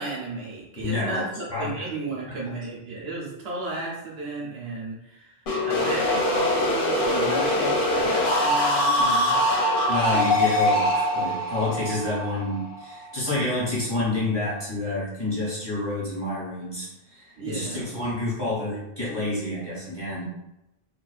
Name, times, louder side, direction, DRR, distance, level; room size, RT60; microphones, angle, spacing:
voice 1, 0.0-5.3 5.6-9.4 17.4-18.0, right 3 dB, 70° right, -4 dB, 0.9 m, -34 dB
voice 2, 0.7-1.9 2.3-2.4 9.9-20.2, left 2 dB, 25° left, -9 dB, 0.9 m, -29 dB
sound 1, 5.5-13.2, left 1 dB, 60° left, 0.7 m, -23 dB
2.4 x 2.2 x 2.4 m, 0.90 s
omnidirectional pair, 1.1 m